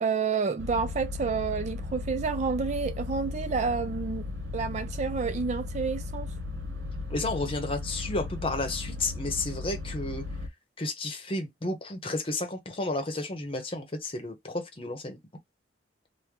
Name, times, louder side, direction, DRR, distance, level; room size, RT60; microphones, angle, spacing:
voice 1, 0.0-4.3 4.5-6.3, right 5 dB, 35° right, 0.3 m, -29 dB
sound 1, 0.6-10.5, left 3 dB, 80° right, 1.0 m, -36 dB
voice 2, 7.1-10.2 10.8-15.2, left 2 dB, 30° left, 0.8 m, -32 dB
3.0 x 2.2 x 3.6 m
head